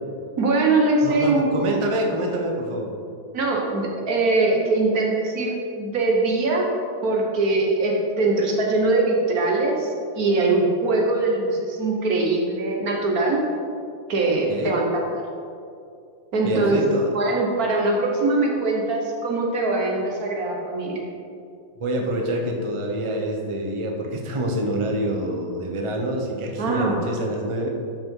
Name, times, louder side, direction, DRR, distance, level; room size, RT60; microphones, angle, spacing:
voice 1, 0.4-1.7 3.3-6.7 7.0-13.4 14.1-15.2 16.3-21.1 26.6-26.9, right 2 dB, 55° right, -1 dB, 1.6 m, -22 dB
voice 2, 1.0-2.9 14.5-14.7 16.4-17.1 21.8-27.7, right 1 dB, 40° right, 1 dB, 0.4 m, -26 dB
11.5 x 5.7 x 3.8 m, 2.4 s
omnidirectional pair, 2.0 m